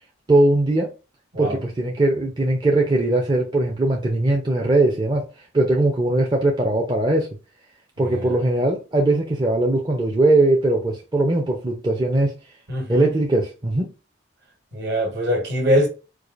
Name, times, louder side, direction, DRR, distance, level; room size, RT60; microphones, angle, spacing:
voice 1, 0.3-0.9 1.4-5.3 5.5-7.3 8.0-12.3 12.9-13.9, right 2 dB, 20° right, 0.5 m, -20 dB
voice 2, 8.0-8.3 12.7-13.1 14.7-15.9, equal, 55° right, 1.4 m, -23 dB
4.7 x 2.5 x 2.4 m
head